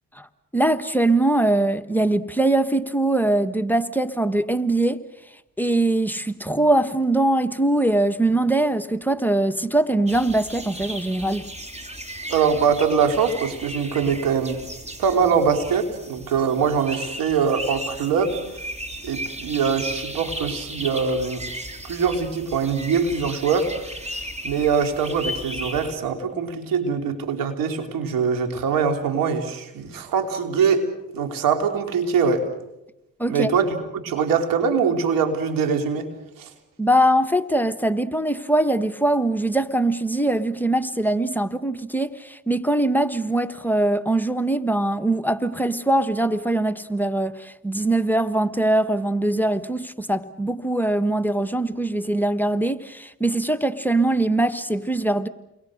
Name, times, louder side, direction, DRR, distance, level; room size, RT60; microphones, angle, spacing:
voice 1, 0.5-5.0 5.6-11.5 33.2-33.5 36.8-55.3, right 1 dB, 5° left, 1.4 m, -22 dB
sound 1, 10.1-26.0, equal, 20° right, 3.4 m, -35 dB
voice 2, 12.3-14.6 15.0-18.4 19.0-21.5 21.8-24.0 24.4-30.9 31.1-32.4 33.3-36.1 36.4-36.5, right 6 dB, 85° right, 3.6 m, -23 dB
30.0 x 22.5 x 6.6 m
cardioid pair, 65°, 33 cm